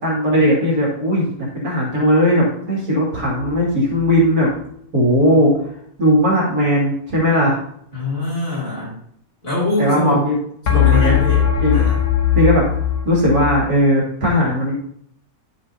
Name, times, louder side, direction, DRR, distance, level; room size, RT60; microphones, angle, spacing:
voice 1, 0.0-4.5 4.9-5.5 6.0-7.6 9.8-10.4 10.7-11.2 11.6-11.8 12.3-12.6 13.0-14.7, equal, 70° right, -5 dB, 3.0 m, -17 dB
sound 1, 3.3-4.2 10.7-13.7, left 9 dB, 75° left, 1.7 m, -19 dB
voice 2, 7.9-9.0 9.4-10.2 10.7-11.4 11.7-12.0, left 2 dB, 40° left, -6 dB, 4.0 m, -23 dB
10.5 x 7.6 x 2.8 m, 0.67 s
omnidirectional pair, 1.6 m